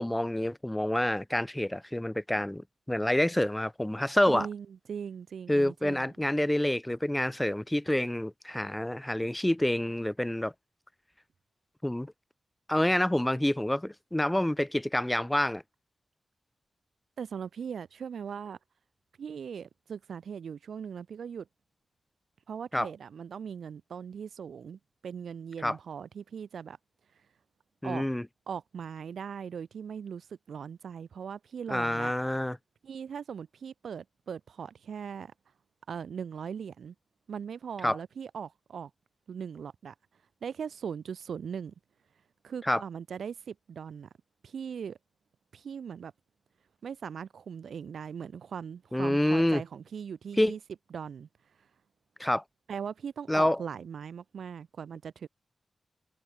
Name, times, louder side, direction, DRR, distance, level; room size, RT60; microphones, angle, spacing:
voice 1, 0.0-4.5 5.5-10.5 11.8-12.1 12.7-15.6 22.7-22.9 25.6-25.8 27.8-28.2 31.7-32.6 37.8-38.0 42.7-42.8 48.9-49.6 50.4-50.5 52.2-52.4 53.3-53.6, left 1 dB, 10° left, 1.5 m, -27 dB
voice 2, 4.3-6.1 17.2-18.6 19.2-21.5 22.5-26.8 27.8-28.0 28.5-32.1 32.8-35.3 35.9-36.9 37.3-38.9 39.3-39.9 40.4-41.7 42.4-44.1 44.4-45.0 45.5-46.1 46.8-50.6 50.9-51.3 52.7-55.3, right 7 dB, 90° right, 4.0 m, -39 dB
cardioid pair, 65°, 0 cm